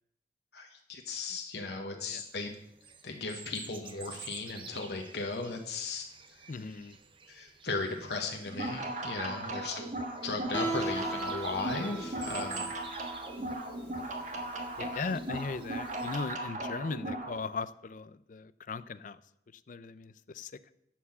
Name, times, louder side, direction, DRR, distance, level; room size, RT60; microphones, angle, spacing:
voice 1, 0.5-2.5 3.0-6.1 7.3-9.9 10.2-12.7 14.9-15.1, left 3 dB, 65° left, 2 dB, 1.1 m, -36 dB
voice 2, 1.9-2.2 6.5-7.0 9.4-9.6 12.5-12.8 13.4-13.5 14.8-19.2 19.5-20.7, left 4 dB, 50° left, 15 dB, 0.4 m, -39 dB
sound 1, 2.1-16.2, right 6 dB, 30° right, 0.7 m, -51 dB
sound 2, 8.5-17.3, right 1 dB, 45° right, 1.3 m, -37 dB
Guitar, 10.5-16.2, right 2 dB, 10° left, 1.7 m, -39 dB
11.0 x 4.6 x 7.4 m, 0.77 s
head